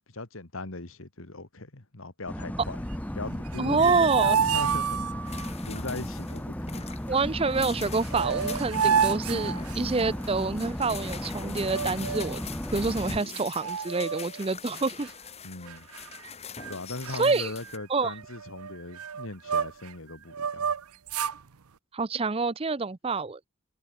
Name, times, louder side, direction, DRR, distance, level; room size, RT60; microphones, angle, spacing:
voice 1, 0.1-2.8 3.1-6.9 15.4-15.9 16.7-20.8, left 2 dB, 70° left, 2.1 m, -39 dB
sound 1, 2.3-13.2, equal, 5° left, 0.8 m, -35 dB
sound 2, 3.5-5.5 7.7-7.8 8.0-10.2 11.6-12.4 13.0-13.1 13.3-14.4 14.8-15.1 15.7-16.3 16.6-16.8 17.0-19.9 20.3-21.4, right 7 dB, 90° right, 0.7 m, -30 dB
voice 2, 3.6-4.4 7.1-12.4 12.7-15.1 17.1-17.5 17.9-18.1 21.9-23.4, right 4 dB, 25° right, 0.5 m, -27 dB
sound 3, 5.3-17.8, left 6 dB, 30° left, 2.7 m, -43 dB
head